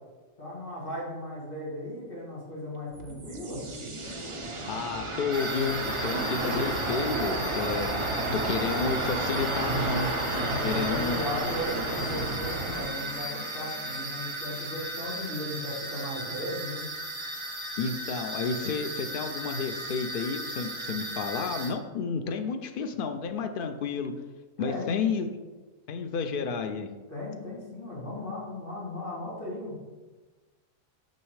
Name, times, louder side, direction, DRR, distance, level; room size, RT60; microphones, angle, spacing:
voice 1, 0.4-3.6 7.9-8.3 10.5-16.9 24.6-25.0 27.1-29.9, left 1 dB, 40° left, -7 dB, 2.5 m, -37 dB
sound 1, 2.7-15.6, right 2 dB, 40° right, 0.4 m, -34 dB
voice 2, 4.7-8.1 8.3-10.1 10.6-11.2 17.8-24.1 24.6-25.3 25.9-26.9, left 5 dB, 75° left, 6 dB, 0.5 m, -31 dB
sound 2, 5.3-21.7, right 1 dB, 25° right, 0.9 m, -37 dB
sound 3, 5.6-12.9, right 2 dB, 85° right, 1.5 m, -34 dB
6.6 x 5.7 x 3.2 m, 1.3 s
omnidirectional pair, 1.5 m